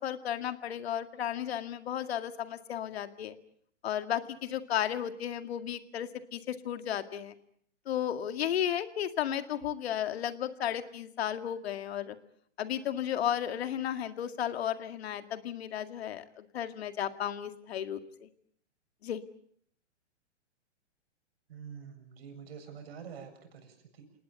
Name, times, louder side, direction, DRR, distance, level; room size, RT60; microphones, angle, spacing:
voice 1, 0.0-3.4 3.8-7.3 7.9-12.2 12.6-18.3 19.0-19.2, left 10 dB, 60° left, 9 dB, 2.2 m, -34 dB
voice 2, 21.5-24.2, right 7 dB, 55° right, 6 dB, 7.4 m, -47 dB
28.5 x 19.0 x 7.0 m, 0.64 s
hypercardioid pair, 120°, 36 cm